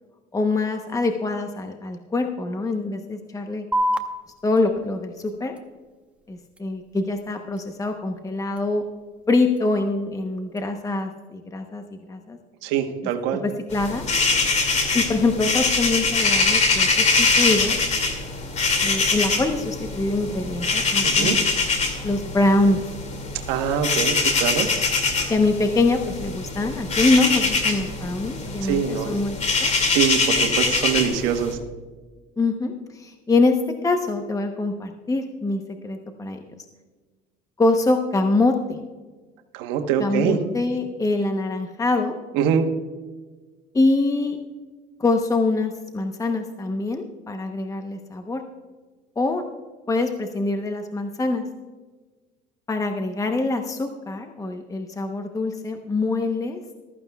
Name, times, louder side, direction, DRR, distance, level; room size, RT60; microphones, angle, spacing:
voice 1, 0.3-3.7 4.4-5.5 6.3-8.8 9.3-11.8 12.1-12.4 13.3-14.0 14.9-17.8 18.8-21.4 22.0-22.8 25.3-29.7 32.4-33.6 33.8-36.4 37.6-38.8 40.0-42.1 43.7-44.4 45.0-48.4 49.2-49.4 49.9-51.4 52.7-56.6, left 2 dB, 15° left, 5 dB, 0.9 m, -24 dB
sound 1, 3.7-10.7, equal, 5° right, 1.0 m, -34 dB
voice 2, 12.6-13.4 21.0-21.4 23.5-24.7 28.6-29.1 29.9-31.6 39.5-40.4 42.3-42.6, right 8 dB, 85° right, 5 dB, 1.2 m, -23 dB
sound 2, 13.7-31.5, left 3 dB, 40° left, 2.4 m, -23 dB
15.0 x 13.5 x 2.3 m, 1.4 s
cardioid pair, 100°, 19 cm